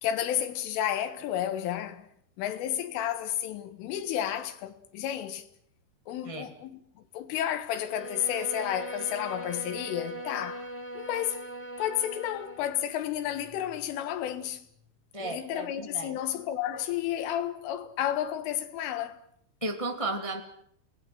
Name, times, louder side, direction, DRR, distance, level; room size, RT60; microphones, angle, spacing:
voice 1, 0.0-2.1 2.4-5.5 6.1-6.8 7.1-10.7 11.0-11.5 11.8-14.6 15.2-19.2, left 11 dB, 90° left, 4.2 m, -31 dB
Bowed string instrument, 7.8-12.7, right 1 dB, 25° right, 1.8 m, -40 dB
voice 2, 15.1-16.2 19.6-20.4, right 2 dB, 35° left, 0.4 m, -34 dB
29.0 x 19.0 x 7.7 m
omnidirectional pair, 5.5 m